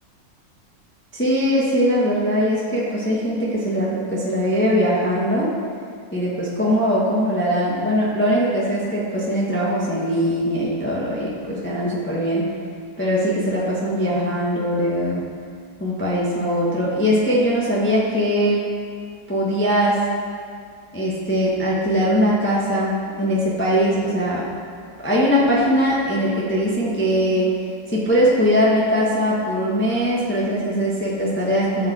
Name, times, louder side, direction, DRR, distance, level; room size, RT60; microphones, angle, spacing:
voice 1, 1.1-5.5 6.1-12.5 13.0-15.2 15.8-18.6 19.3-20.0 20.9-24.5 25.0-27.5 27.9-31.9, equal, 5° left, -6 dB, 1.2 m, -21 dB
14.0 x 7.3 x 4.3 m, 2.2 s
omnidirectional pair, 2.0 m